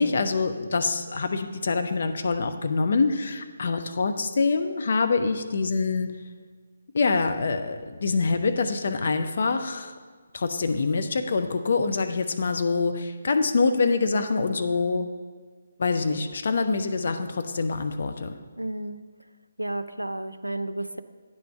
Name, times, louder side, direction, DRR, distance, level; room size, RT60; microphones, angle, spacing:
voice 1, 0.0-6.1 6.9-9.9 10.3-15.1 15.8-18.4, left 4 dB, 50° left, 7 dB, 0.6 m, -25 dB
voice 2, 18.6-19.0 19.6-21.0, right 1 dB, 90° right, 11 dB, 0.4 m, -32 dB
9.5 x 4.3 x 6.6 m, 1.5 s
figure-of-eight pair, 145°, 0 cm